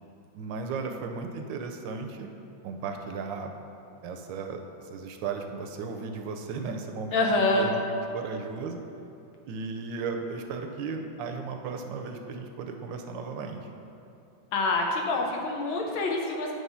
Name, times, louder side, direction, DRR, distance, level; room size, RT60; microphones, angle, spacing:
voice 1, 0.3-2.3 2.6-3.5 4.0-4.6 4.9-7.3 7.5-8.8 9.5-13.6, right 4 dB, 75° right, 4 dB, 1.2 m, -35 dB
voice 2, 7.1-7.7 14.5-16.5, left 2 dB, 90° left, 0 dB, 1.7 m, -26 dB
9.0 x 3.2 x 5.5 m, 2.7 s
omnidirectional pair, 2.1 m